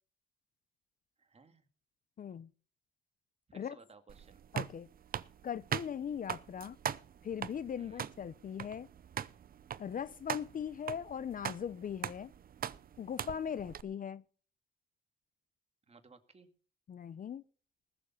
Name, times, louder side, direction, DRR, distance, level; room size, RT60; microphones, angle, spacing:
voice 1, 1.2-1.7 3.5-4.6 7.8-8.1 15.9-16.5, right 4 dB, 30° right, 2.1 m, -59 dB
voice 2, 2.2-2.5 3.5-3.8 4.5-4.9 5.4-6.8 7.2-8.9 9.8-12.3 13.0-14.2 16.9-17.4, left 8 dB, 45° left, 0.6 m, -39 dB
sound 1, 4.1-13.8, right 9 dB, 45° right, 0.7 m, -41 dB
20.0 x 7.0 x 5.6 m
cardioid pair, 90°, 20 cm